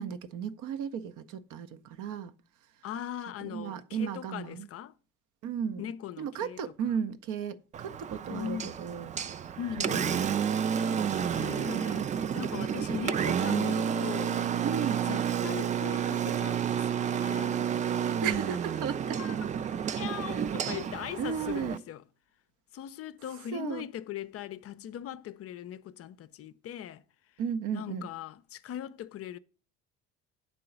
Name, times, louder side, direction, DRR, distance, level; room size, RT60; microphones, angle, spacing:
voice 1, 0.0-2.3 3.4-4.7 5.4-5.9 6.2-9.1 9.8-10.0 14.6-15.1 18.2-19.4 19.9-20.5 21.2-21.8 23.5-23.8 27.4-28.1, right 7 dB, 55° right, 0.8 m, -35 dB
voice 2, 2.8-4.9 5.8-6.9 8.3-8.8 9.6-10.3 11.0-14.5 15.0-17.6 18.3-18.4 19.0-19.4 20.0-22.0 22.7-27.0 27.7-29.4, left 10 dB, 40° left, 0.5 m, -40 dB
Engine, 7.7-21.8, right 8 dB, 20° right, 0.3 m, -30 dB
8.5 x 3.8 x 6.7 m
hypercardioid pair, 55°, 36 cm